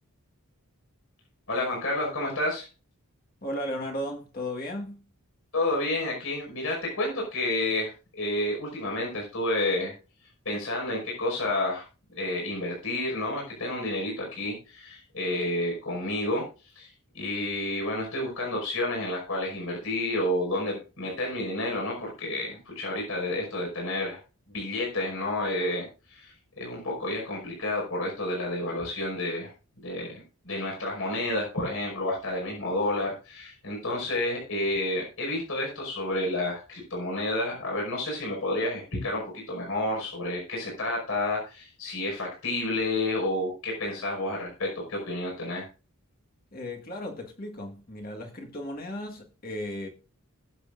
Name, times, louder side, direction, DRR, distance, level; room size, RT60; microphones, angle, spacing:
voice 1, 1.5-2.7 5.5-9.9 10.5-11.9 12.2-16.5 16.7-24.2 24.5-29.5 29.8-45.7, left 1 dB, 70° left, 5.5 m, -30 dB
voice 2, 3.4-5.1 46.5-49.9, left 1 dB, 40° left, 1.7 m, -35 dB
20.5 x 7.6 x 2.6 m
head